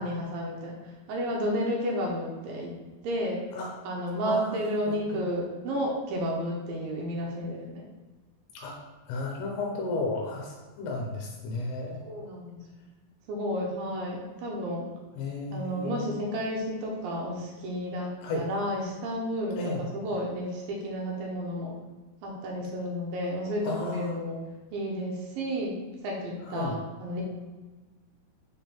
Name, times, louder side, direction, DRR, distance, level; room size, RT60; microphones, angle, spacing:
voice 1, 0.0-2.7 3.0-3.4 3.8-7.8 12.0-12.6 13.3-14.9 15.5-21.8 22.2-24.4 24.7-25.8 26.0-27.2, equal, 75° right, -1 dB, 2.2 m, -32 dB
voice 2, 4.2-4.6 4.8-5.2 8.5-8.8 9.1-12.0 15.2-16.2 18.2-18.4 19.5-19.9 23.6-24.2 26.4-26.8, left 2 dB, 75° left, -1 dB, 2.6 m, -33 dB
6.2 x 3.6 x 4.4 m, 1.3 s
omnidirectional pair, 5.0 m